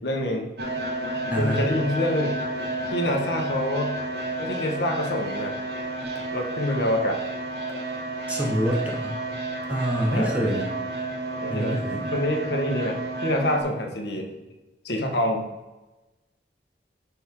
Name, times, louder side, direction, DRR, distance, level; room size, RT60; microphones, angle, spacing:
voice 1, 0.0-0.5 1.4-2.4 2.8-3.9 4.4-5.6 6.3-7.2 10.1-10.3 11.4-11.8 12.1-14.3 14.8-15.4, left 1 dB, 70° left, 3 dB, 1.4 m, -26 dB
sound 1, 0.6-13.6, right 2 dB, 65° right, 1.4 m, -31 dB
voice 2, 1.3-1.6 8.3-9.2 9.7-10.7 11.5-12.1, equal, 10° right, -2 dB, 1.4 m, -26 dB
11.0 x 4.6 x 3.7 m, 1.1 s
head